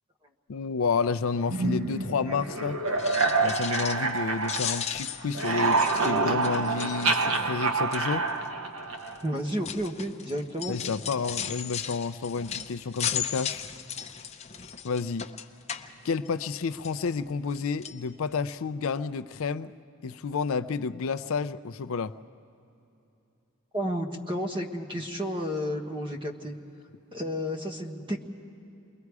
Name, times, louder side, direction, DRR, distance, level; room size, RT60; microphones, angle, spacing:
voice 1, 0.5-2.8 3.4-8.3 10.7-13.7 14.8-15.3 16.0-19.7 20.0-22.1, left 5 dB, 70° left, 12 dB, 0.5 m, -30 dB
sound 1, 1.5-5.0 5.3-9.3, right 3 dB, 80° right, 1.2 m, -27 dB
sound 2, 2.9-4.2 4.4-7.6 7.9-8.3 9.0-16.5 16.8-17.6 17.8-18.0 18.5-18.6 18.9-19.0, left 8 dB, 30° left, 0.7 m, -36 dB
voice 2, 9.2-10.7 23.7-26.6 27.1-28.2, equal, 25° right, 3 dB, 1.4 m, -31 dB
29.0 x 21.5 x 4.8 m, 2.8 s
head